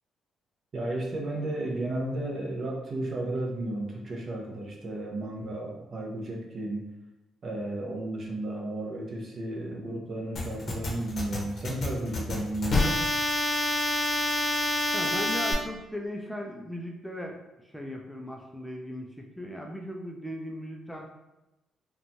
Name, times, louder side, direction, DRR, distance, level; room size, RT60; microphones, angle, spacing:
voice 1, 0.7-6.8 7.4-13.0, right 1 dB, 45° right, -1 dB, 0.6 m, -33 dB
sound 1, 10.4-15.5, left 1 dB, 50° left, 0.7 m, -27 dB
voice 2, 14.9-21.1, left 1 dB, 5° left, 0 dB, 0.3 m, -38 dB
2.9 x 2.2 x 2.6 m, 0.97 s
cardioid pair, 90°, 0 cm